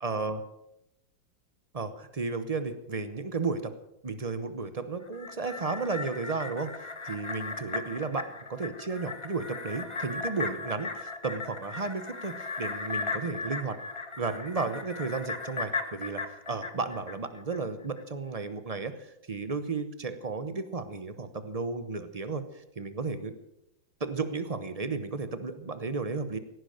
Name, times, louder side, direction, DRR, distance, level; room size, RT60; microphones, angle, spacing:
voice 1, 0.0-0.4 1.7-3.7 4.0-13.8 14.2-22.5 22.8-23.3 24.0-26.4, right 4 dB, 35° right, 11 dB, 0.5 m, -33 dB
sound 1, 5.0-17.6 18.0-18.1, left 3 dB, 25° left, 0.8 m, -37 dB
17.5 x 11.0 x 6.5 m, 0.85 s
omnidirectional pair, 2.1 m